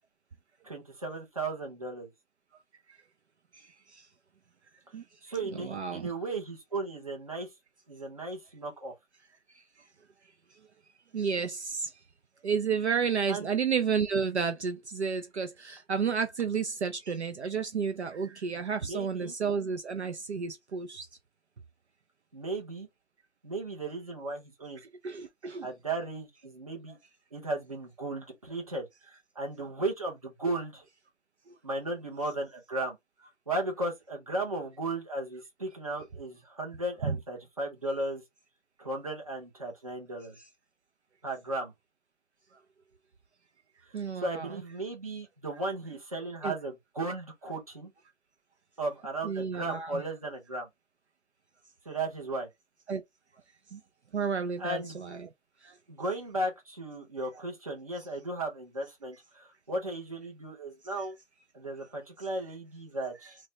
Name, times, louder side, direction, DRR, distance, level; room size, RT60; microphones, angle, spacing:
voice 1, 0.6-2.1 5.2-7.5 7.9-8.9 13.3-13.5 18.2-19.3 22.3-22.9 23.4-24.8 25.6-27.0 27.3-30.9 31.6-33.0 33.5-38.2 38.8-40.4 41.2-41.7 43.9-47.9 48.8-50.7 51.8-52.5 54.6-55.0 55.9-61.2 61.5-63.4, right 2 dB, 30° right, 0.8 m, -35 dB
voice 2, 3.5-4.1 4.9-5.0 5.6-6.1 9.5-9.6 11.1-11.9 12.4-21.1 25.0-25.7 31.5-31.6 37.0-37.2 43.9-44.5 46.4-46.5 49.2-50.0 52.9-53.0 53.7-53.8 54.1-55.3 55.6-55.7, right 6 dB, 60° right, 0.5 m, -31 dB
3.2 x 2.2 x 3.8 m
hypercardioid pair, 175°, 38 cm